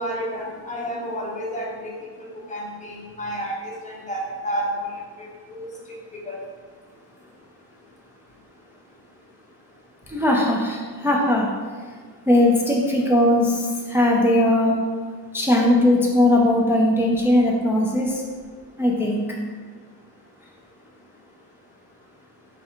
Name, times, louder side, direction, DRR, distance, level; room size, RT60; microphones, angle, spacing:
voice 1, 0.0-1.9 2.3-5.7 6.1-6.4, equal, 20° left, -3 dB, 0.7 m, -31 dB
voice 2, 10.1-11.5 12.3-14.8 15.3-18.2 18.8-19.2, left 1 dB, 5° right, -3 dB, 0.3 m, -19 dB
4.3 x 2.4 x 4.4 m, 1.6 s
wide cardioid pair, 165°, 40 cm